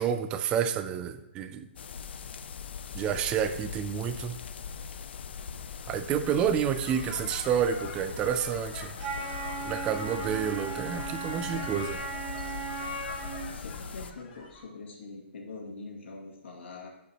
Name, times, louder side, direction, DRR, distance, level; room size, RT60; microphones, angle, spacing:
voice 1, 0.0-1.7 2.9-4.4 5.9-8.9 9.6-12.0, right 8 dB, 15° right, 10 dB, 0.3 m, -29 dB
sound 1, 1.8-14.1, left 6 dB, 60° left, 0.5 m, -41 dB
sound 2, 6.7-14.6, left 3 dB, 40° left, 2.2 m, -45 dB
Wind instrument woodwind instrument, 9.0-13.5, right 4 dB, 30° right, 1.6 m, -37 dB
voice 2, 13.5-16.9, left 3 dB, 75° left, -2 dB, 2.3 m, -43 dB
12.0 x 5.4 x 3.0 m, 0.90 s
hypercardioid pair, 170°, 7 cm